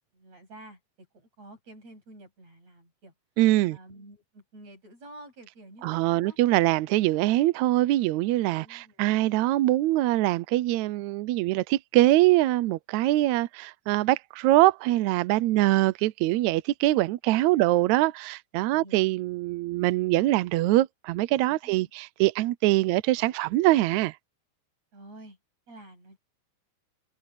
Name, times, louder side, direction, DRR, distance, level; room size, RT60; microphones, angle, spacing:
voice 1, 0.1-3.1 3.7-6.4 8.4-9.1 17.5-17.8 18.7-19.0 21.6-21.9 24.9-25.4 25.7-26.2, right 1 dB, 50° right, 9.0 m, -50 dB
voice 2, 3.4-3.8 5.8-24.1, right 17 dB, 85° right, 1.6 m, -23 dB
open air
omnidirectional pair, 4.0 m